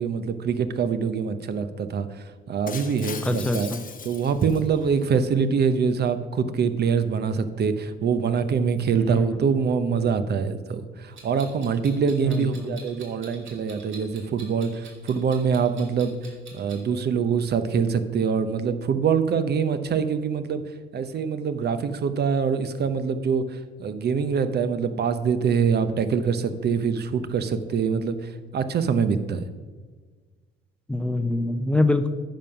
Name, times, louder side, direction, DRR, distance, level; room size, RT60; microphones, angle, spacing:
voice 1, 0.0-3.7 4.0-16.1 16.5-20.6 20.9-29.4, right 6 dB, 55° right, 11 dB, 0.8 m, -24 dB
Shatter, 2.7-5.1, left 6 dB, 45° left, 1.0 m, -39 dB
voice 2, 3.2-3.8 9.1-9.5 12.2-12.8 30.9-32.1, left 2 dB, 5° left, 9 dB, 0.6 m, -25 dB
Clock, 11.1-16.8, right 4 dB, 75° right, 2.4 m, -46 dB
10.0 x 5.5 x 5.8 m, 1.4 s
cardioid pair, 90°, 20 cm